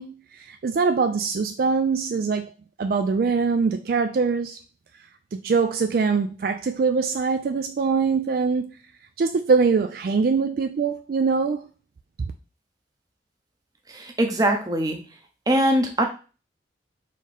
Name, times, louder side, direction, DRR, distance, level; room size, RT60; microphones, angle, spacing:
voice 1, 0.0-2.5 2.8-4.6 5.3-8.7 9.2-11.6, right 5 dB, 55° right, 0.3 m, -23 dB
voice 2, 13.9-15.0 15.5-16.0, right 1 dB, 20° right, 0.7 m, -22 dB
4.2 x 3.7 x 3.4 m
head